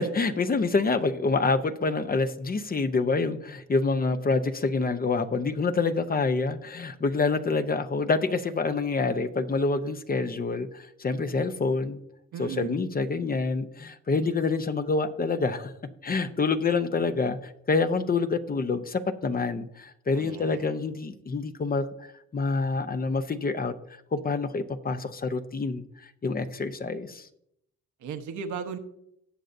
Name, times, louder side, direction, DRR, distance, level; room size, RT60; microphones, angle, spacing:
voice 1, 0.0-12.0 12.4-15.7 16.0-21.9 22.3-23.7 24.1-25.8 26.2-27.3, left 4 dB, 30° left, 10 dB, 0.8 m, -27 dB
voice 2, 12.3-12.7 20.1-20.8 28.0-28.8, right 6 dB, 75° right, 6 dB, 1.1 m, -36 dB
18.0 x 6.5 x 2.7 m, 0.75 s
cardioid pair, 90°, 30 cm